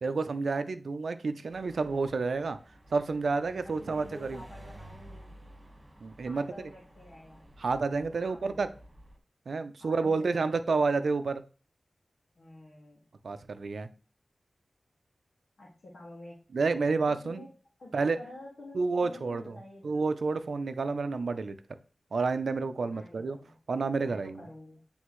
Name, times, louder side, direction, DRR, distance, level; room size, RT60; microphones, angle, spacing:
voice 1, 0.0-2.6 2.9-4.4 6.0-6.5 7.6-8.7 9.5-11.4 13.2-13.9 16.5-17.4 17.9-18.2 18.7-19.5 19.8-21.6 22.1-23.4 23.7-24.4, right 4 dB, 80° right, 10 dB, 0.5 m, -29 dB
sound 1, 1.5-9.2, right 1 dB, 30° right, 1.7 m, -52 dB
voice 2, 3.5-5.3 6.2-7.4 8.2-8.6 9.8-10.5 12.4-13.1 15.6-16.5 17.1-17.5 17.8-19.9 22.8-23.6 24.0-24.8, left 1 dB, 75° left, -5 dB, 1.8 m, -49 dB
9.3 x 3.5 x 3.1 m, 0.37 s
wide cardioid pair, 60°, 0 cm